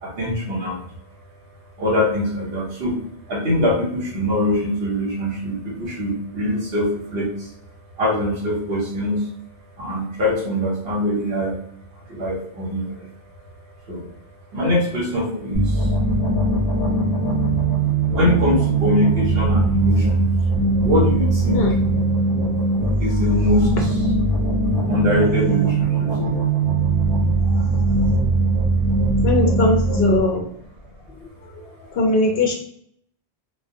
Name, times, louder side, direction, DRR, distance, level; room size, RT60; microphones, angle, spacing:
voice 1, 0.0-0.9 1.8-3.0 3.3-7.5 8.0-9.3 9.8-11.6 12.1-13.1 13.9-14.0 14.5-15.9 18.1-20.3 20.8-21.7 23.0-24.1 24.9-26.4, left 1 dB, 70° right, -3 dB, 1.1 m, -23 dB
sound 1, 15.5-30.2, right 3 dB, 25° right, 1.0 m, -20 dB
voice 2, 29.2-30.4 31.5-31.6 31.9-32.5, left 2 dB, 75° left, 1 dB, 0.9 m, -20 dB
2.2 x 2.1 x 2.6 m, 0.66 s
omnidirectional pair, 1.0 m